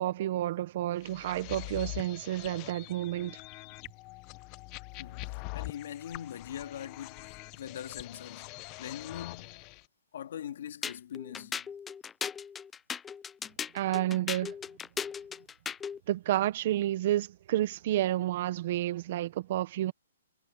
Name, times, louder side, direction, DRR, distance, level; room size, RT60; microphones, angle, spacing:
voice 1, 0.0-3.4 13.7-14.5 16.1-19.9, right 13 dB, 45° right, 1.3 m, -30 dB
sound 1, 1.0-9.8, left 23 dB, 25° left, 1.1 m, -44 dB
voice 2, 5.0-9.7 10.1-11.7, left 10 dB, 60° left, 2.9 m, -42 dB
sound 2, 10.8-16.0, left 7 dB, 10° left, 0.6 m, -37 dB
hypercardioid pair, 160°, 0 cm